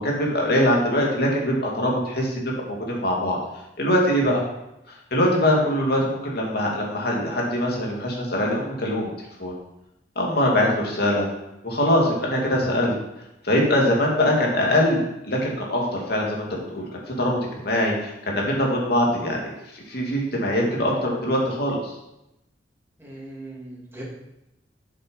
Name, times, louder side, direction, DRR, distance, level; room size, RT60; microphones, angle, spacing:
voice 1, 0.0-3.4 3.8-4.4 5.1-9.1 9.4-9.5 10.2-11.3 11.6-12.9 13.4-16.9 17.2-21.9, left 1 dB, 60° left, -2 dB, 2.7 m, -23 dB
voice 2, 23.0-24.0, right 1 dB, 15° right, -5 dB, 2.8 m, -39 dB
7.9 x 6.6 x 5.5 m, 0.89 s
head